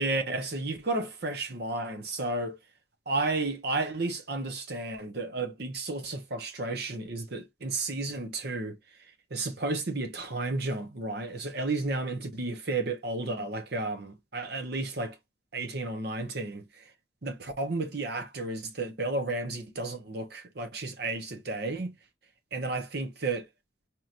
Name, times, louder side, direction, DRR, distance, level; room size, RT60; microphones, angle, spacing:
voice 1, 0.0-2.6 3.1-8.8 9.3-15.2 15.5-16.8 17.2-22.0 22.5-23.4, right 2 dB, 55° right, 0.9 m, -32 dB
4.7 x 2.9 x 2.5 m
head